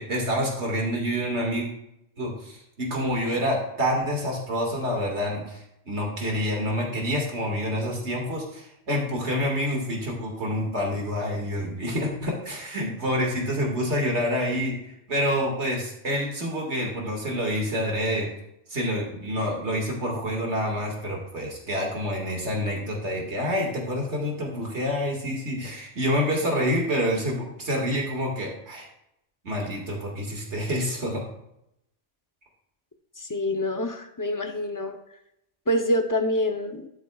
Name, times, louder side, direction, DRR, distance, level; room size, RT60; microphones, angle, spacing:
voice 1, 0.0-1.7 2.2-14.8 15.1-18.3 18.7-28.9 29.4-31.2, equal, 65° right, 0 dB, 2.4 m, -27 dB
voice 2, 33.2-35.0 35.7-36.9, left 1 dB, 20° left, 5 dB, 0.6 m, -26 dB
11.5 x 8.2 x 2.4 m, 0.80 s
omnidirectional pair, 1.2 m